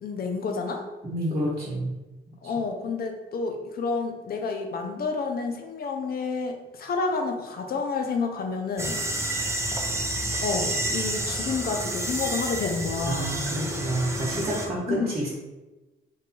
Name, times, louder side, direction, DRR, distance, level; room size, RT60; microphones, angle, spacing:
voice 1, 0.0-0.8 2.4-9.0 10.4-13.3 14.9-15.2, left 4 dB, 50° left, 4 dB, 0.7 m, -29 dB
voice 2, 1.0-1.9 13.1-15.3, right 1 dB, 30° right, -4 dB, 1.2 m, -29 dB
sound 1, 8.8-14.7, right 1 dB, 15° right, 0.6 m, -29 dB
3.3 x 2.6 x 4.3 m, 1.1 s
cardioid pair, 90°, 20 cm